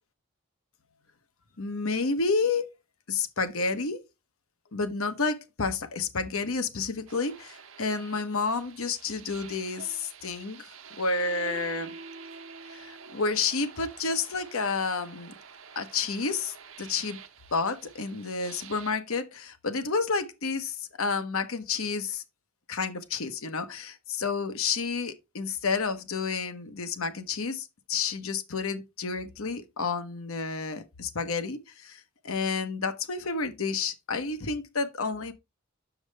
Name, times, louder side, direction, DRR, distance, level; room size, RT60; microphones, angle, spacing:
voice 1, 1.6-2.7 3.1-4.0 4.7-10.7 11.0-11.9 12.7-15.3 15.7-17.2 17.5-22.2 22.7-35.3, left 4 dB, 80° left, 1.0 m, -30 dB
sound 1, 7.1-18.9, right 4 dB, 70° right, 0.9 m, -47 dB
7.1 x 6.5 x 3.3 m
head